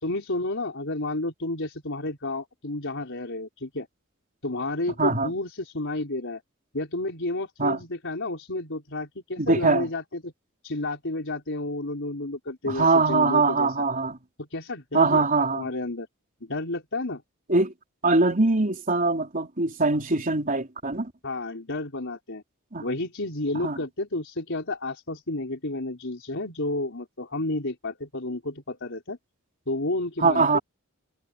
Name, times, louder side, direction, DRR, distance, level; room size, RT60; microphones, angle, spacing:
voice 1, 0.0-3.9 4.4-6.4 6.7-10.3 10.6-13.7 14.4-15.2 15.5-16.1 16.4-17.2 21.2-22.4 22.8-29.2 29.7-30.6, left 2 dB, 60° left, 4.7 m, -31 dB
voice 2, 5.0-5.3 7.6-7.8 9.4-9.9 12.7-14.2 14.9-15.7 17.5-17.7 18.0-21.1 22.7-22.9 23.5-23.8 30.2-30.6, right 3 dB, 40° right, 3.9 m, -22 dB
head